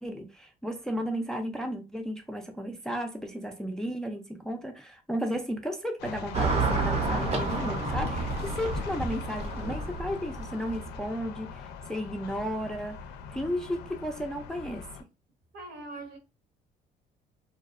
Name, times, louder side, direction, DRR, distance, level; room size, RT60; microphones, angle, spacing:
voice 1, 0.0-13.0 13.3-15.1, equal, 5° left, 0.3 m, -34 dB
sound 1, 6.0-15.0, left 6 dB, 80° left, 0.4 m, -41 dB
Car passing by / Traffic noise roadway noise, 6.3-11.0, right 3 dB, 40° right, 0.6 m, -30 dB
voice 2, 15.5-16.2, right 2 dB, 75° right, 0.9 m, -41 dB
2.6 x 2.0 x 2.4 m
cardioid pair, 110°, 17 cm